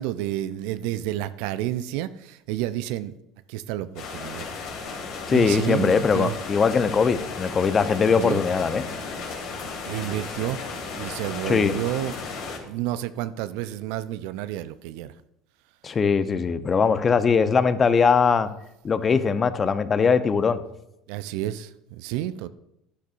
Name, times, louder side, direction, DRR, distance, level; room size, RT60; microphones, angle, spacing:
voice 1, 0.0-3.1 3.5-4.5 5.3-6.4 8.2-8.4 9.8-10.6 11.0-12.1 12.7-15.1 21.1-22.5, right 13 dB, 70° right, 0.5 m, -30 dB
sound 1, 4.0-12.6, left 4 dB, 65° left, 3.0 m, -35 dB
voice 2, 5.3-8.8 11.5-11.8 15.8-18.5 18.8-20.6, left 5 dB, 35° left, 0.8 m, -21 dB
12.0 x 11.5 x 2.6 m
hypercardioid pair, 70°, 0 cm